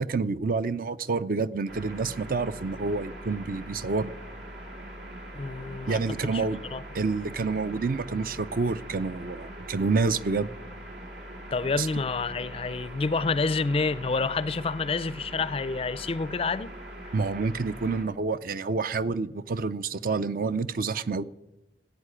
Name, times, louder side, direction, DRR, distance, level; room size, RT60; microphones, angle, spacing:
voice 1, 0.0-4.1 5.9-6.6 6.9-10.5 11.8-11.9 17.1-21.2, right 4 dB, 50° right, 0.5 m, -28 dB
sound 1, 1.7-18.0, right 1 dB, 80° right, 2.7 m, -42 dB
voice 2, 5.3-6.0 6.3-6.4 6.7-6.8 11.5-16.7, left 4 dB, 35° left, 0.4 m, -28 dB
14.5 x 8.2 x 9.8 m
head